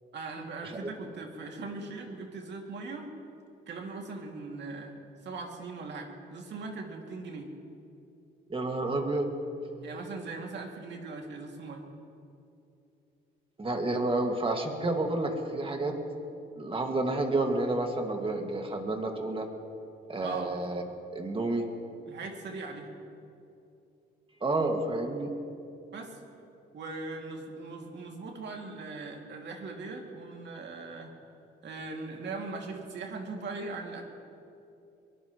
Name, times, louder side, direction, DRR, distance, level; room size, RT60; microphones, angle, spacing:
voice 1, 0.1-3.1 3.7-4.9 5.2-7.5 9.8-11.8 20.2-20.5 22.1-22.9 25.9-26.2 26.7-31.1 31.6-34.1, right 3 dB, 65° right, 1 dB, 2.5 m, -40 dB
voice 2, 8.5-9.3 13.6-16.0 16.6-19.5 20.1-20.8 21.1-21.7 24.4-25.3, right 2 dB, 25° right, 3 dB, 2.0 m, -30 dB
23.0 x 19.5 x 3.1 m, 2.7 s
cardioid pair, 90°, 20 cm